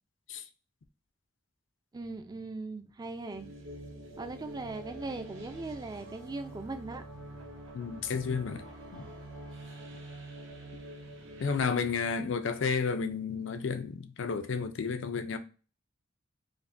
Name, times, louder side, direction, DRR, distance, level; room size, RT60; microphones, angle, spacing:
voice 1, 1.9-3.5 4.2-7.0, right 3 dB, 20° right, 0.3 m, -39 dB
sound 1, 3.3-11.6, right 1 dB, 85° right, 1.0 m, -46 dB
voice 2, 7.7-8.7 8.9-9.1 11.4-15.4, left 5 dB, 75° left, 0.5 m, -32 dB
5.0 x 2.1 x 2.5 m
head